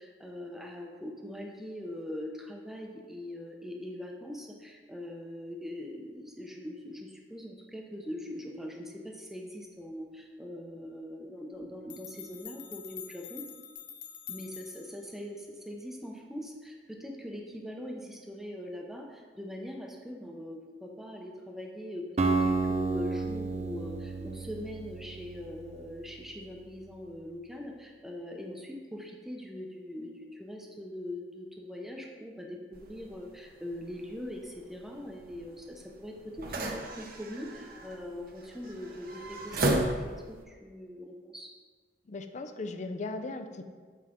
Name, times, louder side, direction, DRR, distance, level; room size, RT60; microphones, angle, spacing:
voice 1, 0.0-13.5 14.3-41.5, left 1 dB, ahead, 1 dB, 0.7 m, -42 dB
sound 1, 11.5-11.6 11.9-15.0, left 8 dB, 80° left, 0.7 m, -46 dB
Acoustic guitar, 22.2-26.3, right 3 dB, 40° right, 0.5 m, -31 dB
sound 2, 32.7-40.4, right 1 dB, 55° right, 0.8 m, -36 dB
voice 2, 42.1-43.6, left 3 dB, 45° left, 8 dB, 0.5 m, -37 dB
7.8 x 5.0 x 3.6 m, 1.5 s
head